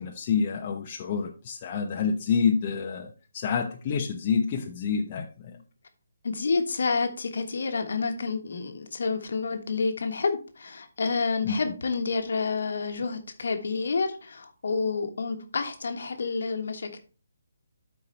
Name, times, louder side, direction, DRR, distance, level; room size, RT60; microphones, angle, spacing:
voice 1, 0.0-5.6 11.4-11.6, left 6 dB, 35° left, 0.8 m, -28 dB
voice 2, 6.2-17.0, left 4 dB, 60° left, 1.4 m, -29 dB
12.5 x 4.6 x 3.2 m
figure-of-eight pair, 145°, 0 cm